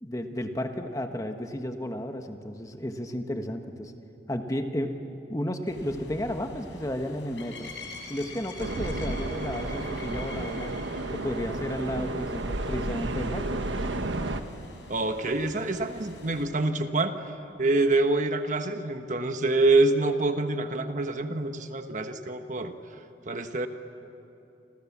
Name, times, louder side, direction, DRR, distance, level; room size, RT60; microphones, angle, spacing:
voice 1, 0.0-3.9 4.3-5.0 5.3-7.7 8.1-10.7 11.1-13.6, left 1 dB, 20° left, 6 dB, 1.3 m, -33 dB
sound 1, 5.7-16.4, left 2 dB, 75° left, 5.0 m, -45 dB
sound 2, 8.6-14.4, right 2 dB, 80° right, 1.3 m, -32 dB
voice 2, 14.9-17.2 17.6-22.7 23.3-23.7, right 2 dB, 40° right, 7 dB, 1.3 m, -26 dB
29.0 x 26.5 x 7.3 m, 2.8 s
head